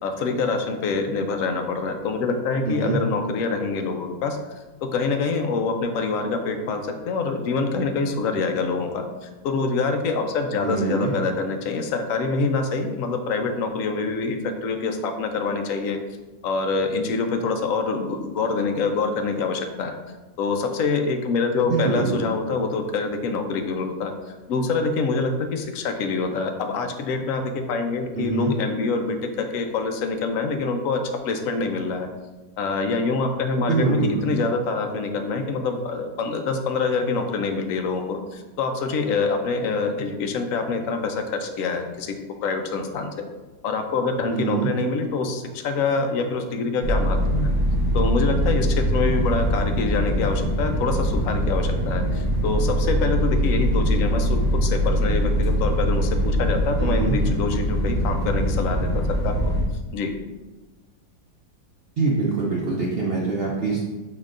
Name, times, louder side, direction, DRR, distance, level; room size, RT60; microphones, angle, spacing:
voice 1, 0.0-4.4 4.8-16.0 16.4-20.0 20.4-32.1 32.6-42.2 42.4-43.2 43.6-47.5 47.9-59.5 59.9-60.1, left 4 dB, 70° left, 5 dB, 0.9 m, -25 dB
voice 2, 2.7-3.0 10.6-11.1 21.7-22.2 28.2-28.5 33.6-34.3 44.3-44.7 56.8-57.2 62.0-63.8, right 4 dB, 80° right, -3 dB, 0.5 m, -24 dB
sound 1, 46.8-59.6, equal, 25° left, 1.0 m, -22 dB
5.4 x 3.8 x 2.5 m, 1.2 s
omnidirectional pair, 1.8 m